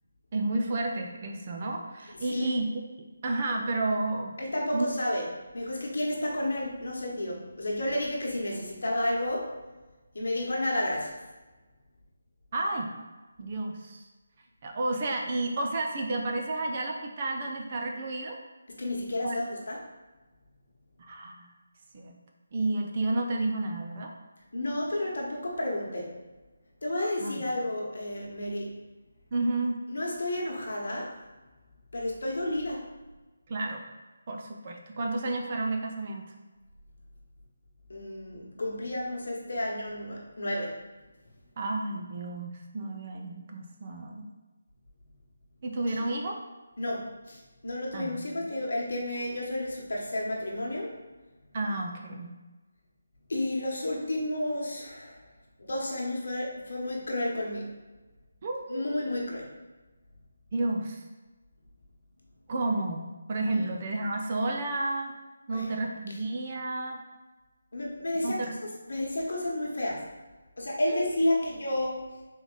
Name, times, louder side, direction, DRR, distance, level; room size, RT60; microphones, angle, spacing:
voice 1, 0.3-2.7 3.0-4.3 4.7-4.9 12.5-12.9 13.4-14.1 14.6-18.4 19.2-19.4 21.0-21.5 21.9-22.2 22.5-24.1 27.2-27.4 29.3-29.8 33.5-33.8 34.3-36.2 41.6-44.3 45.6-46.4 47.9-48.2 51.5-52.3 58.4-59.0 60.5-61.0 62.5-65.1 65.5-67.0 68.2-68.6 70.9-71.0, right 2 dB, 40° right, 2 dB, 0.6 m, -31 dB
voice 2, 4.4-5.2 5.5-9.5 10.1-11.2 18.7-19.8 24.5-26.1 26.8-28.8 29.9-31.1 31.9-32.9 37.9-40.8 45.9-46.0 46.8-50.9 53.3-55.2 55.6-57.7 58.7-59.5 63.5-63.7 65.5-65.7 67.7-70.1 70.6-72.1, left 1 dB, 65° left, -2 dB, 1.2 m, -31 dB
3.9 x 3.4 x 3.9 m, 1.2 s
figure-of-eight pair, 155°, 0 cm